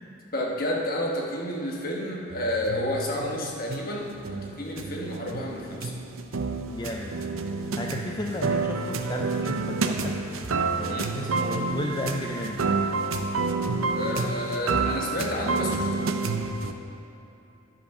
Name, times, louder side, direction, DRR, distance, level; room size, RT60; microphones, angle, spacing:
voice 1, 0.3-5.9 10.9-11.1 13.9-16.1, left 1 dB, 45° left, -2 dB, 1.3 m, -30 dB
sound 1, 2.3-16.7, right 4 dB, 85° right, 0.6 m, -29 dB
voice 2, 6.7-7.2 7.7-10.2 10.7-12.6, left 2 dB, 20° left, 0 dB, 0.4 m, -33 dB
11.0 x 5.9 x 5.5 m, 2.9 s
head